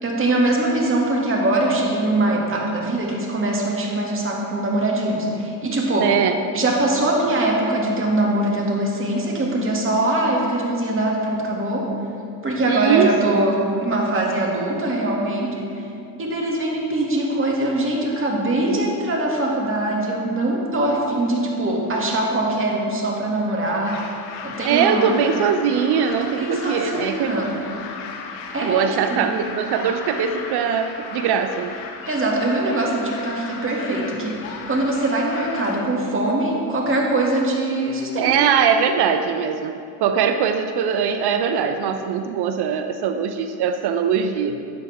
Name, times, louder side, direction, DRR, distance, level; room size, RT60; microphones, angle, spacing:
voice 1, 0.0-6.1 6.5-11.9 12.4-15.9 16.2-24.0 24.4-25.1 26.1-27.5 28.5-29.3 32.1-38.4, right 1 dB, 25° right, -2 dB, 2.3 m, -22 dB
voice 2, 6.0-6.4 12.7-13.4 20.9-21.0 24.6-27.4 28.6-31.7 38.2-44.6, right 7 dB, 55° right, 8 dB, 0.7 m, -21 dB
sound 1, 23.9-35.8, left 5 dB, 90° left, 1.1 m, -36 dB
12.0 x 8.4 x 3.5 m, 2.5 s
supercardioid pair, 90°, 48 cm